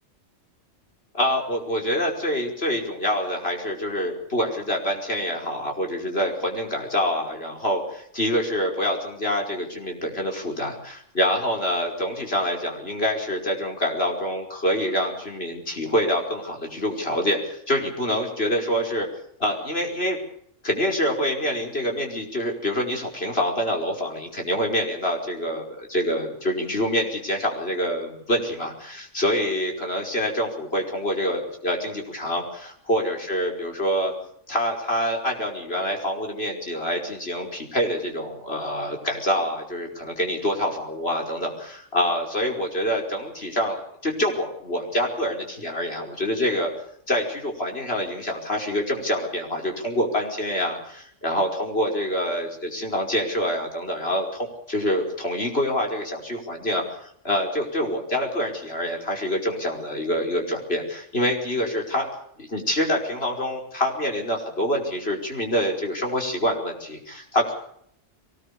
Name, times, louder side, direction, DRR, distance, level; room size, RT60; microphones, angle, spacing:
voice 1, 1.1-19.1 19.4-20.2 20.6-34.1 34.5-46.7 47.1-62.1 62.4-67.5, equal, 55° left, 1 dB, 5.6 m, -26 dB
23.0 x 20.0 x 7.1 m, 0.67 s
omnidirectional pair, 1.3 m